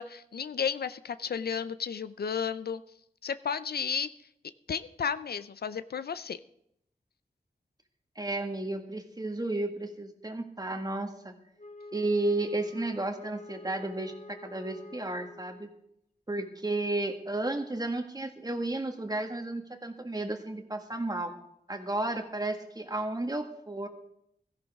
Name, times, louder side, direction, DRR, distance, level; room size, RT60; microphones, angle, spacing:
voice 1, 0.0-2.8 3.2-4.1 4.7-6.4, left 7 dB, 80° left, 14 dB, 0.5 m, -33 dB
voice 2, 8.2-11.3 11.9-15.7 16.3-21.3 21.7-23.9, right 2 dB, 25° right, 4 dB, 1.8 m, -33 dB
Wind instrument woodwind instrument, 11.6-15.8, left 2 dB, 60° left, 1.9 m, -47 dB
16.5 x 14.0 x 3.6 m, 0.75 s
wide cardioid pair, 70°, 16 cm